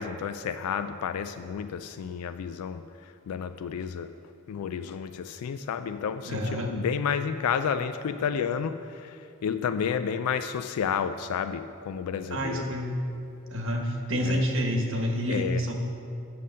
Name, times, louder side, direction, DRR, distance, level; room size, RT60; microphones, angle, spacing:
voice 1, 0.0-2.8 3.3-4.1 4.5-8.8 9.4-12.7 14.2-14.4 15.3-15.6, left 7 dB, 80° left, 10 dB, 0.3 m, -30 dB
voice 2, 6.2-6.8 12.3-13.0 13.5-15.7, equal, 60° right, 2 dB, 1.1 m, -28 dB
7.7 x 6.7 x 6.4 m, 2.7 s
head